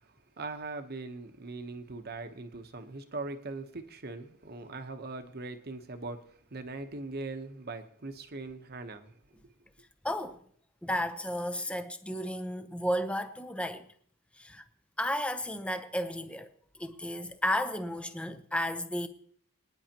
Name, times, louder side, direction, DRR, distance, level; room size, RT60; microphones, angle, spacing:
voice 1, 0.4-9.1, right 3 dB, 45° right, 1.0 m, -41 dB
voice 2, 10.0-10.4 10.8-13.9 14.4-14.6 15.0-19.1, equal, 5° left, 0.7 m, -33 dB
26.0 x 9.8 x 2.9 m
head